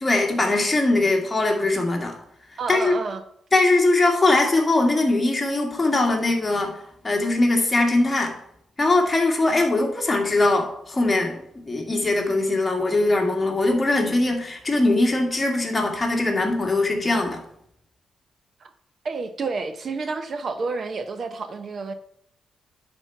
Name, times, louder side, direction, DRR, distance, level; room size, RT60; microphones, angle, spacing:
voice 1, 0.0-2.1 2.7-2.9 3.5-6.8 7.0-8.3 8.8-11.4 11.7-17.4, left 2 dB, 20° left, 1 dB, 1.9 m, -21 dB
voice 2, 2.6-3.2 18.6-18.7 19.0-21.9, right 4 dB, 45° right, 9 dB, 0.7 m, -29 dB
10.0 x 4.4 x 5.8 m, 0.72 s
cardioid pair, 110°, 0 cm